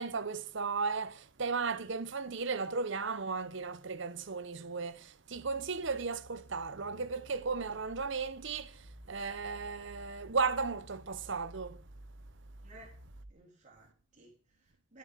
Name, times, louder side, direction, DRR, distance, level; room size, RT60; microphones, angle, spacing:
voice 1, 0.0-11.8, right 4 dB, 55° right, 0.8 m, -35 dB
sound 1, 5.3-13.3, right 1 dB, 85° right, 1.9 m, -54 dB
voice 2, 12.6-12.9 13.3-15.0, right 2 dB, 35° right, 3.5 m, -57 dB
11.5 x 8.6 x 7.1 m
head